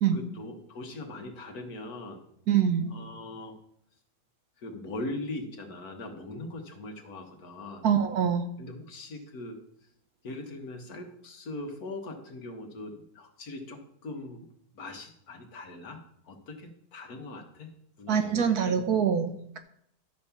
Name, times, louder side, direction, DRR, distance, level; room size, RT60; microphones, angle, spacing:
voice 1, 0.1-2.3 2.9-3.6 4.6-7.9 8.6-9.6 10.2-14.4 14.7-18.8, left 2 dB, 60° left, 4 dB, 1.8 m, -41 dB
voice 2, 2.5-2.9 7.8-8.5 18.1-19.6, right 8 dB, 65° right, 8 dB, 1.2 m, -25 dB
12.0 x 4.3 x 7.0 m, 0.70 s
omnidirectional pair, 1.8 m